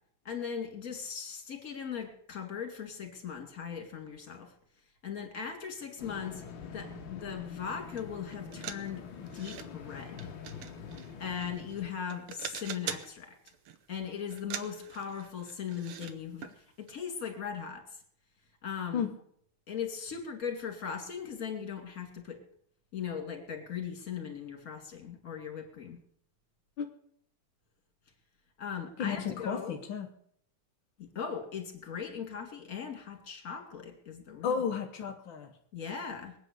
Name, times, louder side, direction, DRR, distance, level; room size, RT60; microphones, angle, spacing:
voice 1, 0.2-4.5 5.0-6.4 6.7-10.3 11.2-13.3 13.9-17.8 18.6-19.1 19.7-22.4 22.9-26.0 28.6-29.8 31.0-34.6 35.7-36.4, left 7 dB, 30° left, 4 dB, 2.2 m, -39 dB
sound 1, 6.0-11.9, left 6 dB, 60° left, 1.2 m, -45 dB
sound 2, 8.0-8.1 8.3-9.7 10.2-11.8 12.1-13.1 13.5-13.8 14.3-16.1 16.4-16.5 16.9-17.0, right 9 dB, 85° right, 1.2 m, -43 dB
voice 2, 29.0-30.1 34.4-35.5, left 7 dB, 80° left, 3 dB, 1.0 m, -33 dB
21.5 x 9.0 x 6.6 m, 0.66 s
omnidirectional pair, 3.9 m